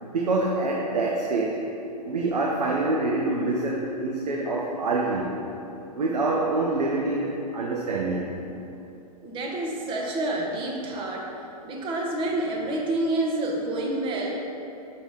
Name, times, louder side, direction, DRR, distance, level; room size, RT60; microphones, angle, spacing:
voice 1, 0.0-1.6 2.0-5.3 5.9-8.4, right 2 dB, 80° right, -2 dB, 0.7 m, -26 dB
voice 2, 9.2-11.3 11.6-14.4, right 2 dB, 25° right, 0 dB, 0.9 m, -28 dB
5.9 x 3.8 x 4.7 m, 2.7 s
hypercardioid pair, 115°, 21 cm